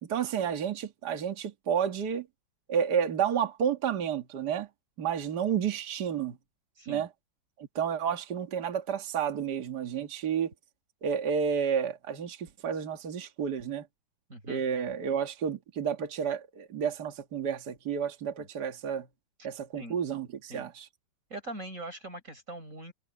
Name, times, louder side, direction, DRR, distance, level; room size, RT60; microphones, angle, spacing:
voice 1, 0.0-2.3 2.7-4.7 5.0-6.4 6.9-7.1 7.6-10.5 11.0-13.9 14.5-19.1 19.4-20.9, right 7 dB, 55° right, 2.1 m, -31 dB
voice 2, 14.3-14.6 18.4-18.5 19.8-20.0 20.5-20.7 21.3-22.9, right 1 dB, 40° right, 6.5 m, -42 dB
omnidirectional pair, 2.2 m